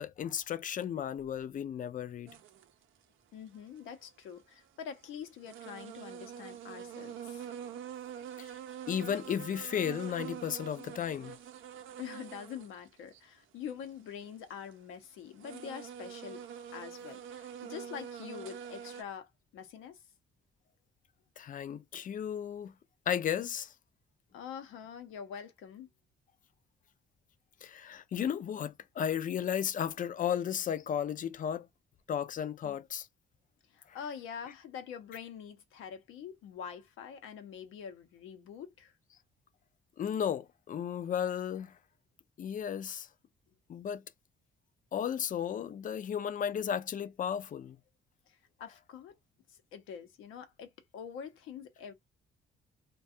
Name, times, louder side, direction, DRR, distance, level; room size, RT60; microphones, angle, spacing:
voice 1, 0.0-2.4 8.4-8.5 8.9-11.4 21.4-22.7 23.1-23.7 27.6-31.7 32.1-33.1 33.9-34.0 40.0-41.8 42.4-43.1 43.7-44.0 44.9-47.8, left 8 dB, 45° left, 0.4 m, -34 dB
sound 1, 2.3-2.7 4.3-4.4 5.0-5.1 5.5-12.8 13.1-13.2 13.8-14.7 15.3-19.0, right 9 dB, 80° right, 0.5 m, -45 dB
voice 2, 3.3-7.5 12.0-16.4 16.7-20.0 24.3-25.9 32.6-32.8 33.7-38.9 48.3-49.1 49.5-51.9, left 8 dB, 90° left, 0.7 m, -45 dB
2.3 x 2.3 x 2.6 m
cardioid pair, 90°, 20 cm